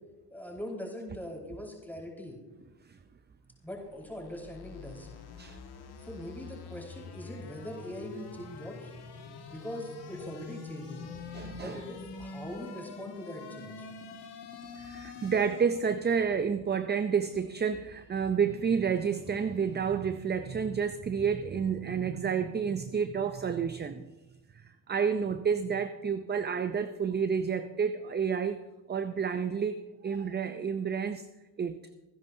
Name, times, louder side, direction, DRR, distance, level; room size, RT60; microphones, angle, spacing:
voice 1, 0.3-2.4 3.6-5.1 6.0-8.9 9.5-11.1 11.6-13.9, equal, 5° left, -2 dB, 4.9 m, -41 dB
sound 1, 3.7-15.9, left 5 dB, 65° left, 1.9 m, -45 dB
voice 2, 11.3-11.8 14.8-24.0 24.5-28.6 28.9-29.8 30.0-31.3 31.6-31.8, right 6 dB, 25° right, 10 dB, 0.5 m, -30 dB
25.0 x 10.5 x 2.7 m, 1.2 s
cardioid pair, 80°, 43 cm